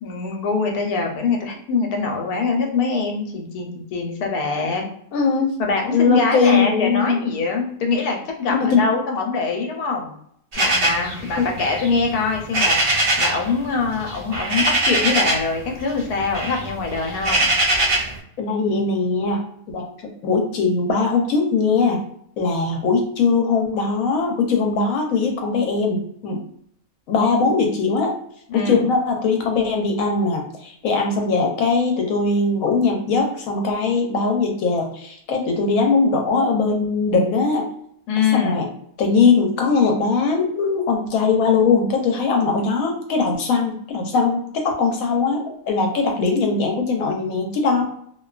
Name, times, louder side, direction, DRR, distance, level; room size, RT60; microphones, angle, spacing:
voice 1, 0.0-4.8 5.6-10.2 10.6-17.5 28.5-28.8 38.1-38.7, left 4 dB, 90° left, 2 dB, 1.1 m, -24 dB
voice 2, 5.1-5.6 5.9-7.2 8.5-8.9 11.4-11.5 18.4-19.4 19.7-19.8 20.2-22.0 22.4-26.4 27.1-28.1 28.5-37.6 38.3-38.7 39.0-47.8, left 4 dB, 70° left, 2 dB, 1.0 m, -20 dB
sound 1, 10.5-13.5 13.7-15.6 15.9-18.2, right 2 dB, 80° right, 0.4 m, -22 dB
2.5 x 2.2 x 2.3 m, 0.68 s
omnidirectional pair, 1.6 m